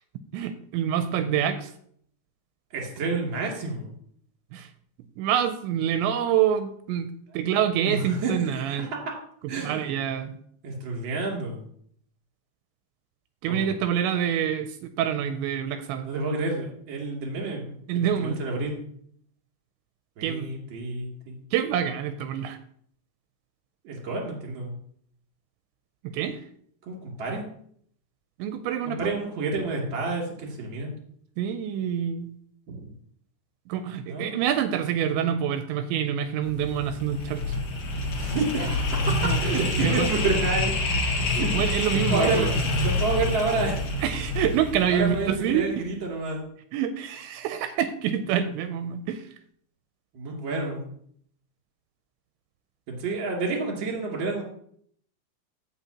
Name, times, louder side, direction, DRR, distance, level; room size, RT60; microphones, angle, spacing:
voice 1, 0.3-1.7 4.5-4.7 5.2-8.9 9.6-10.4 13.4-16.1 17.9-18.4 20.2-20.5 21.5-22.6 26.0-26.4 28.4-29.1 31.4-32.3 33.7-37.6 39.2-39.4 39.7-40.1 41.2-42.5 44.0-45.7 46.7-49.3, right 9 dB, 85° right, 9 dB, 2.8 m, -27 dB
voice 2, 2.7-3.9 7.8-9.0 9.5-9.8 10.6-11.6 13.5-13.7 16.0-18.9 20.2-21.4 23.8-24.7 26.9-27.5 28.8-31.0 32.7-32.9 34.1-34.5 38.1-38.8 39.4-40.7 41.3-41.5 42.1-43.8 44.9-46.4 50.1-50.9 52.9-54.4, right 3 dB, 35° right, -1 dB, 2.4 m, -29 dB
sound 1, 36.4-45.6, left 2 dB, 55° left, 2.0 m, -27 dB
16.0 x 5.6 x 2.9 m, 0.64 s
omnidirectional pair, 5.3 m